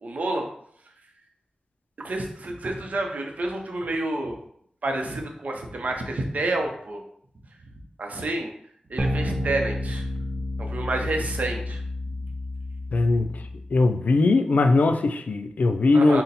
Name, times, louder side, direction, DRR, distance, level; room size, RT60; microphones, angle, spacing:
voice 1, 0.0-0.5 2.0-4.4 4.8-7.0 8.0-8.5 8.9-10.0 10.6-11.8 15.9-16.2, right 2 dB, 70° right, 3 dB, 0.6 m, -29 dB
sound 1, 9.0-13.8, left 1 dB, 35° right, 0.7 m, -30 dB
voice 2, 12.9-13.3 13.7-16.2, left 3 dB, 75° left, 8 dB, 0.3 m, -20 dB
4.0 x 2.1 x 4.0 m, 0.67 s
cardioid pair, 55°, 3 cm